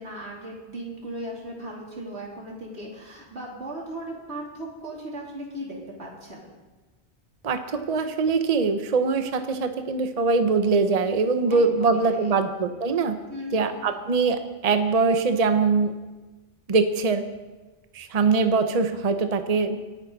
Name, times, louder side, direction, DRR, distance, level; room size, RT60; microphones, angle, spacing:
voice 1, 0.0-6.5 11.5-12.5 13.3-14.0, right 1 dB, 70° right, -3 dB, 3.5 m, -37 dB
voice 2, 7.4-13.2 13.5-15.9 16.7-17.2 17.9-19.8, right 4 dB, 40° right, 8 dB, 0.8 m, -22 dB
26.0 x 9.3 x 4.0 m, 1.2 s
omnidirectional pair, 1.1 m